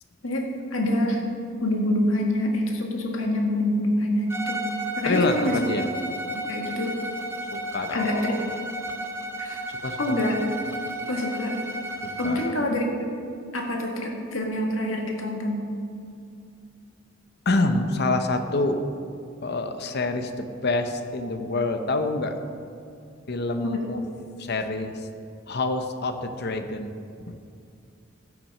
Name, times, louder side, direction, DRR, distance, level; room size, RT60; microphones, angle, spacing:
voice 1, 0.2-1.2 1.6-4.6 5.0-5.5 6.3-7.0 7.9-8.7 9.4-9.6 10.0-10.4 11.1-11.6 12.2-13.3 13.5-15.7 23.6-23.8, left 1 dB, 85° left, 1 dB, 1.7 m, -26 dB
Bowed string instrument, 4.3-12.6, right 1 dB, 15° right, 0.7 m, -33 dB
voice 2, 5.0-5.8 7.5-8.4 9.7-10.2 12.0-12.7 17.5-18.8 19.4-22.4 23.3-24.0 24.4-25.1 25.5-26.9 27.3-27.4, left 2 dB, 55° left, 7 dB, 0.8 m, -27 dB
14.0 x 6.1 x 5.4 m, 2.4 s
head